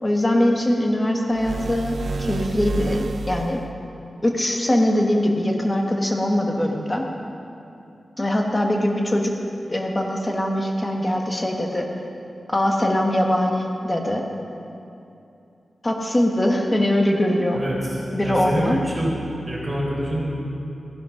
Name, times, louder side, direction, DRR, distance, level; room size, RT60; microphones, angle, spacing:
voice 1, 0.0-3.6 4.2-7.1 8.2-9.3 9.7-11.9 12.5-14.2 15.8-17.6 18.1-18.8, left 1 dB, 20° left, 1 dB, 1.4 m, -22 dB
sound 1, 1.3-3.7, right 3 dB, 70° right, 0.6 m, -29 dB
voice 2, 17.5-19.2 19.5-20.2, equal, 20° right, -5 dB, 4.0 m, -26 dB
15.5 x 10.5 x 5.8 m, 2.7 s
wide cardioid pair, 140°, 0 cm